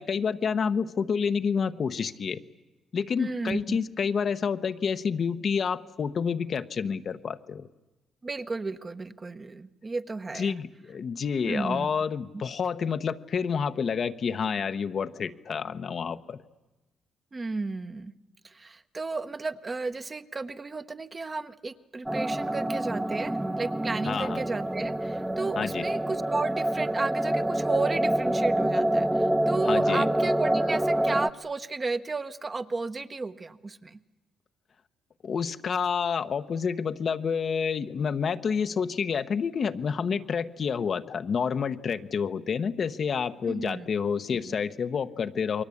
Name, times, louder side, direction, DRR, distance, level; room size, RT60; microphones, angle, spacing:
voice 1, 0.0-2.4 2.9-7.7 10.3-16.4 24.1-24.4 25.6-25.8 29.7-30.1 35.2-45.6, left 6 dB, 50° left, 10 dB, 1.0 m, -29 dB
voice 2, 3.2-3.8 8.2-10.6 11.5-11.9 12.3-12.4 17.3-18.1 18.4-34.0 43.4-43.9 44.4-44.6, right 3 dB, 30° right, 10 dB, 1.1 m, -33 dB
sound 1, 22.1-31.3, right 1 dB, 10° right, 0.9 m, -27 dB
28.5 x 22.5 x 8.5 m, 1.1 s
cardioid pair, 90°, 0 cm